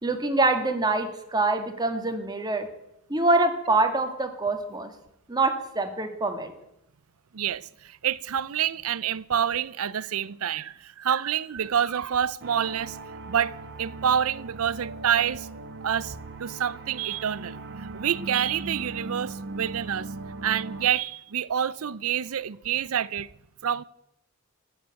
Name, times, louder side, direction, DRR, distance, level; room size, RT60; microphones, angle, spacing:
voice 1, 0.0-2.7 3.1-4.9 5.3-6.5, right 2 dB, 20° right, 1.8 m, -25 dB
voice 2, 7.3-13.0 13.3-15.5 15.8-20.1 20.4-23.3 23.6-23.8, right 9 dB, 70° right, 0.5 m, -27 dB
sound 1, 12.4-20.9, right 3 dB, 55° right, 1.1 m, -39 dB
14.0 x 9.2 x 8.9 m
head